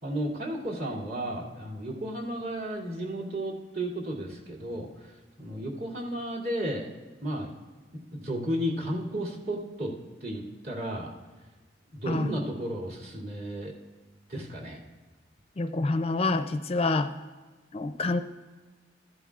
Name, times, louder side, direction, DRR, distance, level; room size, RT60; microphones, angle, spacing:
voice 1, 0.0-6.9 7.2-7.5 8.1-9.9 10.2-11.1 11.9-13.7 14.3-14.8, right 1 dB, 60° right, -5 dB, 2.6 m, -33 dB
voice 2, 15.6-17.1 17.7-18.2, left 3 dB, 35° left, 9 dB, 0.4 m, -27 dB
15.0 x 11.5 x 2.4 m, 1.3 s
head